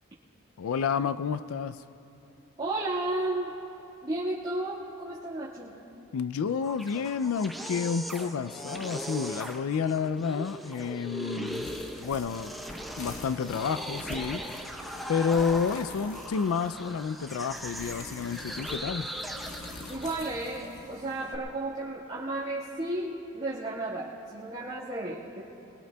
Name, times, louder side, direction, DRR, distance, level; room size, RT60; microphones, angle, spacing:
voice 1, 0.6-1.8 6.1-11.7 12.0-12.5 13.0-14.4 15.1-19.1, left 6 dB, 80° left, 12 dB, 0.4 m, -30 dB
voice 2, 2.6-3.5 4.0-5.8 19.9-25.4, right 2 dB, 30° right, -10 dB, 1.8 m, -33 dB
sound 1, 6.5-20.6, equal, ahead, 0.7 m, -39 dB
sound 2, 11.5-21.4, left 2 dB, 35° left, 1.3 m, -45 dB
23.0 x 21.5 x 2.3 m, 2.9 s
head